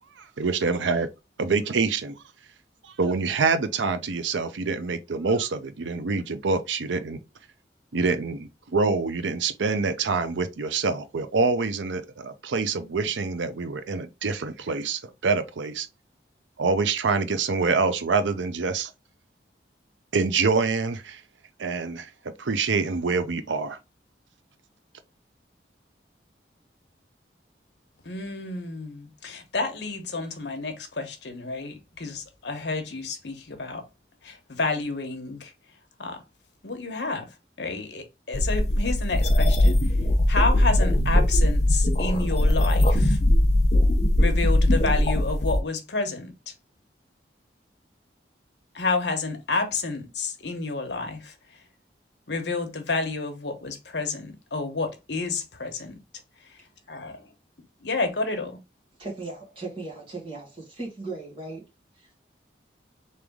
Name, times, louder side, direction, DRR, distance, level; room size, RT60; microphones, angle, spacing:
voice 1, 0.4-1.1 1.4-2.2 2.8-7.2 7.9-15.9 16.6-18.9 20.1-21.2 21.6-22.1 22.4-23.8, right 4 dB, 90° right, 0.6 m, -26 dB
voice 2, 28.0-33.8 34.2-35.5 36.0-36.2 36.6-37.3 37.6-39.9 40.3-43.2 44.2-46.5 48.7-51.3 52.3-55.9 56.5-56.6 56.9-57.3 57.8-58.6, left 3 dB, 70° left, 1.0 m, -30 dB
sound 1, 38.3-45.6, left 1 dB, 40° left, 0.8 m, -20 dB
voice 3, 59.0-61.7 61.9-62.1, right 3 dB, 30° right, 2.0 m, -37 dB
3.9 x 3.3 x 3.5 m
head